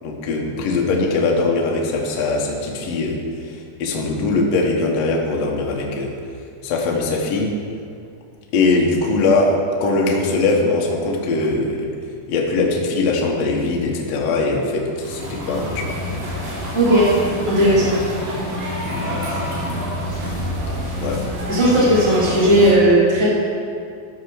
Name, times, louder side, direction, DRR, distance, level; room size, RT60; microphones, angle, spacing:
voice 1, 0.0-3.2 3.5-6.1 6.6-7.5 8.5-9.5 9.8-11.9 12.3-16.0 18.9-19.2 21.0-21.2, left 3 dB, 85° left, -1 dB, 1.5 m, -21 dB
sound 1, 15.0-22.7, equal, 70° right, 4.4 m, -27 dB
voice 2, 16.7-17.1 17.5-18.0 21.5-23.3, right 1 dB, 45° left, -9 dB, 0.3 m, -15 dB
14.0 x 4.8 x 6.1 m, 2.3 s
omnidirectional pair, 4.8 m